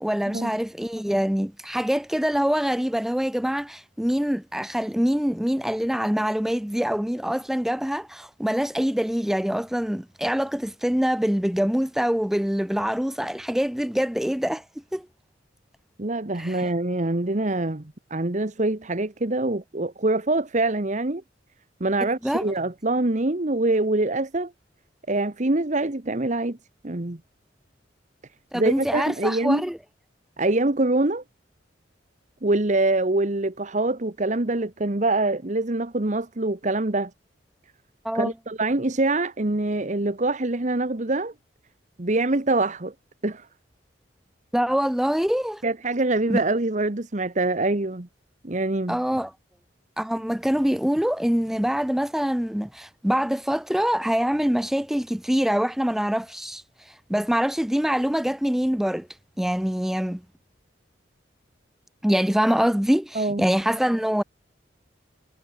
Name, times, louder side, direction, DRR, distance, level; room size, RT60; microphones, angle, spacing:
voice 1, 0.0-14.6 14.9-15.1 16.4-16.7 22.2-22.5 28.5-29.8 38.0-38.3 44.5-45.6 46.3-46.4 48.9-49.3 50.0-59.1 59.4-60.2 62.0-64.2, equal, ahead, 0.3 m, -24 dB
voice 2, 16.0-21.2 21.8-24.5 25.1-26.6 26.8-27.2 28.5-29.7 30.4-31.2 32.4-37.1 38.1-41.3 42.0-42.9 43.2-43.4 45.6-48.1 48.4-49.0 63.1-63.5, right 2 dB, 40° right, 1.3 m, -24 dB
head